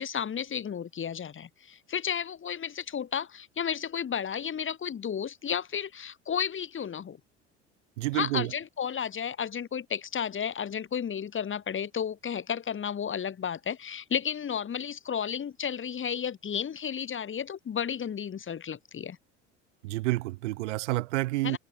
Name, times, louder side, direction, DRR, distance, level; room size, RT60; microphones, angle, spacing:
voice 1, 0.0-7.2 8.1-19.2 21.4-21.6, left 8 dB, 35° left, 3.4 m, -33 dB
voice 2, 8.0-8.5 19.8-21.6, right 19 dB, 75° right, 1.0 m, -29 dB
hypercardioid pair, 70°, 36 cm